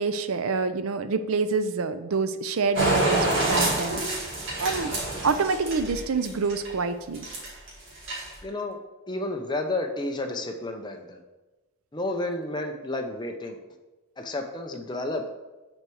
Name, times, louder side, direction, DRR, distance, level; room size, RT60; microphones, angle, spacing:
voice 1, 0.0-4.0 4.6-4.9 5.2-7.2, right 4 dB, 90° right, 11 dB, 0.5 m, -27 dB
sound 1, 2.8-6.7 7.1-7.7 8.0-8.4, right 2 dB, 60° right, 2.2 m, -26 dB
voice 2, 8.4-8.8 9.1-11.2 11.9-13.6 14.2-15.3, left 2 dB, 20° left, 4 dB, 0.7 m, -31 dB
6.4 x 4.5 x 6.2 m, 1.1 s
head